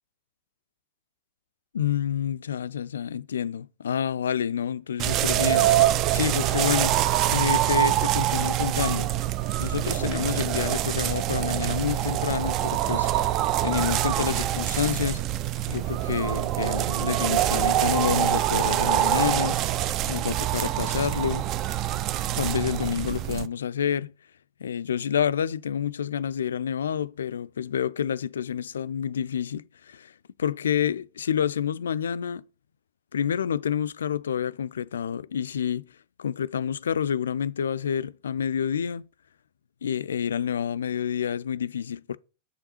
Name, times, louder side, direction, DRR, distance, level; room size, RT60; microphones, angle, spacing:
voice 1, 1.7-7.0 7.3-9.1 9.6-13.3 13.6-15.3 15.7-19.6 20.1-21.5 22.4-24.1 24.6-30.1 30.4-32.4 33.1-35.9 36.2-39.1 39.8-42.2, left 8 dB, 65° left, 0.3 m, -28 dB
sound 1, 5.0-23.5, right 13 dB, 35° right, 0.5 m, -25 dB
6.8 x 5.5 x 4.2 m
figure-of-eight pair, 90°, 0 cm